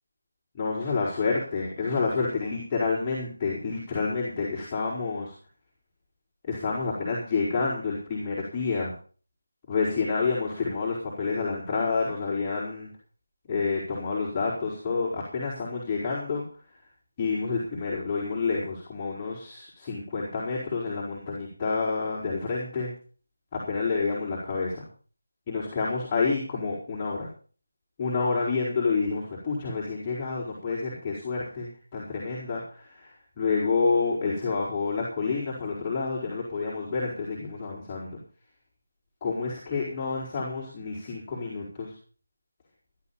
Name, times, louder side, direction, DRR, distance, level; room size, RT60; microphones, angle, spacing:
voice 1, 0.5-5.3 6.5-8.9 9.7-12.9 13.5-16.4 17.2-22.9 23.5-24.8 25.5-27.3 28.0-33.1 33.4-38.2 39.2-41.9, left 4 dB, 20° left, -6 dB, 5.0 m, -29 dB
17.5 x 12.5 x 4.2 m, 0.40 s
figure-of-eight pair, 165°, 0 cm